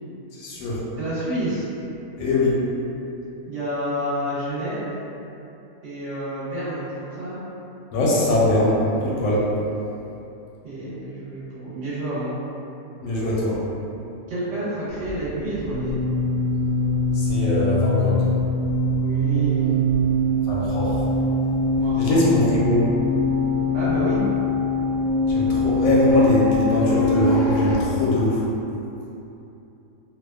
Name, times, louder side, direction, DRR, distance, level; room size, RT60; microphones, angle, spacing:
voice 1, 0.3-0.8 2.2-2.5 7.9-9.4 13.0-13.5 17.1-18.2 20.5-21.0 22.0-22.8 25.3-28.4, left 1 dB, 80° left, -6 dB, 1.0 m, -22 dB
voice 2, 1.0-1.7 3.5-4.9 5.8-7.4 10.6-12.4 14.3-16.0 19.0-19.8 21.8-22.3 23.7-24.2, right 1 dB, 60° right, -10 dB, 1.0 m, -29 dB
sound 1, 14.9-27.7, left 1 dB, 20° left, 0.5 m, -22 dB
2.7 x 2.2 x 2.2 m, 2.9 s
omnidirectional pair, 1.5 m